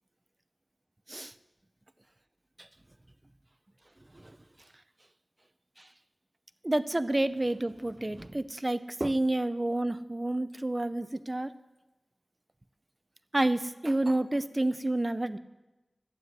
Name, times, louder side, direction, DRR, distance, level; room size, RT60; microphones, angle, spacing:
voice 1, 6.6-11.5 13.3-15.4, right 1 dB, 35° right, 13 dB, 0.7 m, -29 dB
12.5 x 9.3 x 8.0 m, 1.0 s
wide cardioid pair, 50°, 0 cm